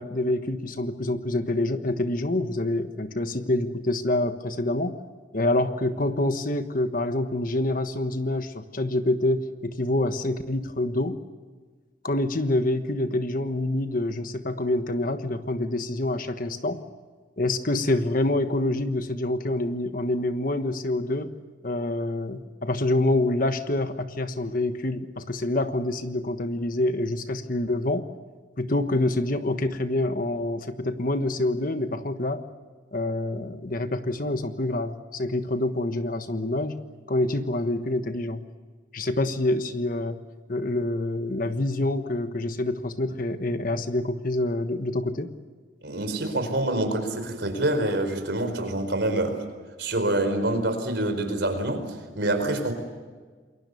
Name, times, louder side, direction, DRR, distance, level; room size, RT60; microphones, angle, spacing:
voice 1, 0.0-5.0 5.3-11.2 12.0-16.8 17.4-21.4 21.6-28.1 28.6-32.5 32.9-38.4 38.9-40.2 40.5-45.4, left 1 dB, 45° left, 9 dB, 1.3 m, -26 dB
voice 2, 45.8-49.4 49.8-51.8 52.1-52.7, right 1 dB, 60° right, 7 dB, 4.5 m, -26 dB
28.0 x 22.5 x 6.9 m, 1.5 s
head